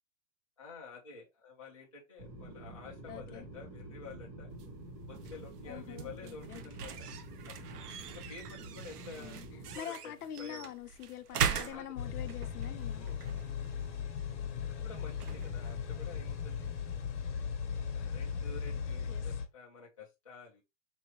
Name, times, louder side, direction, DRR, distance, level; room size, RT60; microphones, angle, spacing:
voice 1, 0.6-4.5 5.1-7.1 7.4-7.8 8.1-10.7 11.3-11.9 13.0-13.2 14.8-16.7 17.2-17.5 17.9-20.6, left 4 dB, 25° left, 0.3 m, -50 dB
sound 1, 2.2-9.8, right 1 dB, 25° right, 1.1 m, -48 dB
voice 2, 3.1-3.5 5.7-6.6 9.2-9.5 9.7-13.1 19.1-19.3, left 11 dB, 65° left, 0.7 m, -45 dB
sound 2, 4.5-17.3, right 8 dB, 70° right, 0.8 m, -42 dB
sound 3, 11.9-19.4, left 7 dB, 45° left, 1.1 m, -37 dB
4.6 x 3.0 x 2.9 m
hypercardioid pair, 160°, 48 cm